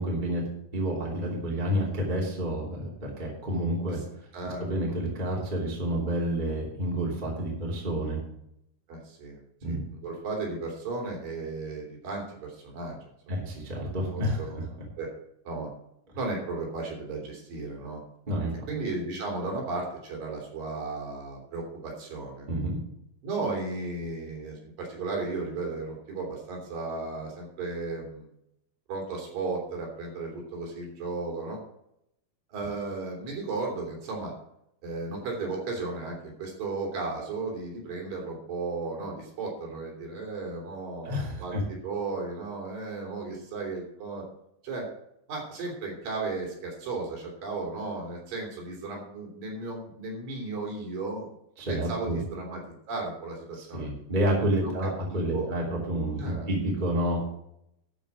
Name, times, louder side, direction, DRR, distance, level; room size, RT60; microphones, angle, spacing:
voice 1, 0.0-4.0 4.6-8.2 9.6-9.8 13.3-14.4 18.3-18.5 22.5-22.8 41.0-41.6 51.6-52.2 53.7-57.2, right 1 dB, 15° right, -3 dB, 2.5 m, -29 dB
voice 2, 4.3-4.7 8.9-9.4 9.7-13.0 13.3-13.6 14.1-15.1 15.4-15.7 16.1-18.0 18.7-22.5 23.2-28.3 28.9-31.6 32.5-34.3 34.8-41.1 41.4-44.2 44.6-44.9 45.3-51.3 51.7-52.6 52.9-53.9 54.6-55.5 56.2-56.5, right 3 dB, 60° right, -1 dB, 4.6 m, -35 dB
12.5 x 5.4 x 7.4 m, 0.77 s
omnidirectional pair, 4.6 m